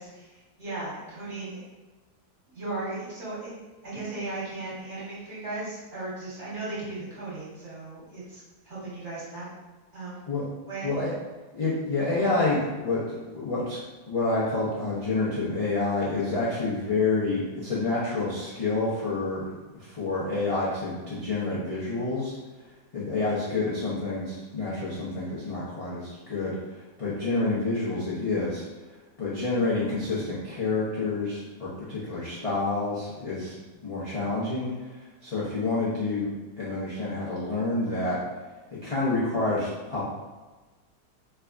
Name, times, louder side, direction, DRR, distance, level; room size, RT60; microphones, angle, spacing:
voice 1, 0.0-1.6 2.5-3.5 3.8-9.5 9.9-10.3 10.7-10.9, right 2 dB, 45° right, -9 dB, 1.6 m, -36 dB
voice 2, 11.5-13.8 14.1-22.3 22.9-28.6 29.2-36.3 36.6-38.2 38.7-40.0, left 3 dB, 45° left, -9 dB, 0.4 m, -28 dB
3.4 x 3.3 x 2.5 m, 1.2 s
omnidirectional pair, 1.7 m